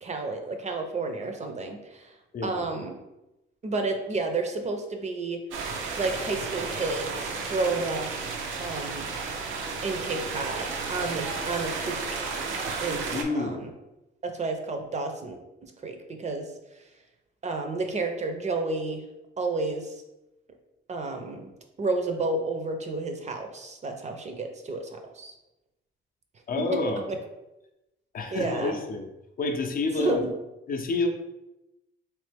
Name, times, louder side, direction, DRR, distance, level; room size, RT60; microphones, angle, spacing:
voice 1, 0.0-2.1 2.4-3.0 3.6-5.4 6.0-8.1 8.6-9.1 9.8-12.2 12.8-13.7 14.2-16.5 17.4-19.0 19.4-20.0 20.9-21.5 21.8-24.9 25.1-25.3 26.6-26.8 27.1-27.2 28.3-28.8 30.0-30.3, right 3 dB, 35° right, 5 dB, 0.6 m, -31 dB
voice 2, 2.3-2.7 13.1-13.7 26.5-27.2 28.1-29.1 29.4-30.2 30.7-31.1, left 3 dB, 45° left, 4 dB, 0.6 m, -29 dB
sound 1, 5.5-13.2, right 4 dB, 80° right, 0.6 m, -33 dB
3.2 x 2.8 x 3.3 m, 0.94 s
cardioid pair, 90°, 20 cm